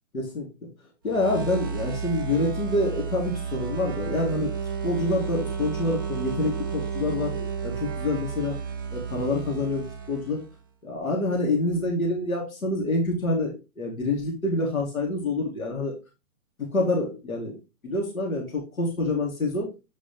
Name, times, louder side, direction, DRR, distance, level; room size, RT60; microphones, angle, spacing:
voice 1, 0.1-0.5 1.0-4.5 4.8-8.6 8.9-10.4 10.8-16.0 16.6-17.5 17.8-19.7, left 2 dB, 90° left, -1 dB, 3.7 m, -27 dB
sound 1, 1.1-10.6, right 6 dB, 15° right, 0.4 m, -32 dB
8.8 x 5.1 x 3.6 m, 0.27 s
hypercardioid pair, 150°, 41 cm